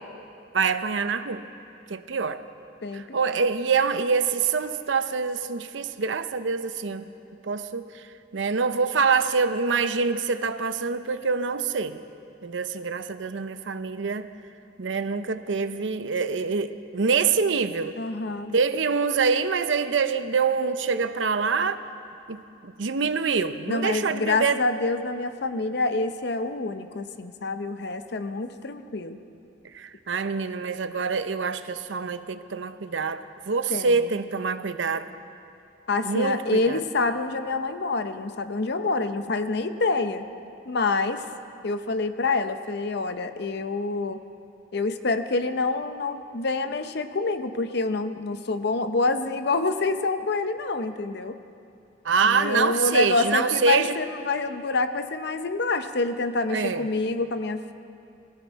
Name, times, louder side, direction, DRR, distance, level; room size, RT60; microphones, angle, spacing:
voice 1, 0.5-1.5 1.9-2.4 2.9-7.0 7.4-8.1 8.3-12.0 12.4-14.3 14.8-18.0 18.5-21.8 22.3-24.6 29.7-35.1 36.0-36.8 52.0-54.0 56.5-56.9, right 5 dB, 90° right, 11 dB, 0.7 m, -25 dB
voice 2, 2.8-3.4 18.0-18.5 23.7-29.2 33.7-34.0 35.9-40.2 40.7-41.2 41.6-44.2 44.7-51.4 52.2-57.7, left 3 dB, 60° left, 9 dB, 0.7 m, -27 dB
21.0 x 14.5 x 4.6 m, 2.6 s
head